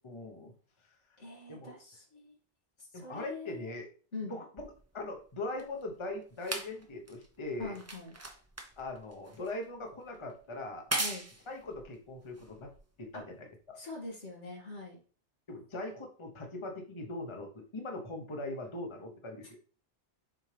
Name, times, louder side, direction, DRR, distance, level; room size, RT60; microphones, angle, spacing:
voice 1, 0.0-0.5 1.5-1.7 2.9-3.9 4.3-4.7 4.9-7.8 8.8-10.9 11.5-12.7 13.0-13.8 15.5-19.6, left 2 dB, 25° left, 3 dB, 1.0 m, -41 dB
voice 2, 1.2-2.4 2.8-3.7 4.1-4.4 7.6-8.1 11.0-11.3 13.1-13.2 13.7-15.0, left 3 dB, 85° left, -3 dB, 2.6 m, -43 dB
sound 1, 4.6-13.2 14.0-14.1, right 2 dB, 15° right, 0.8 m, -41 dB
7.3 x 4.4 x 3.3 m, 0.40 s
omnidirectional pair, 1.2 m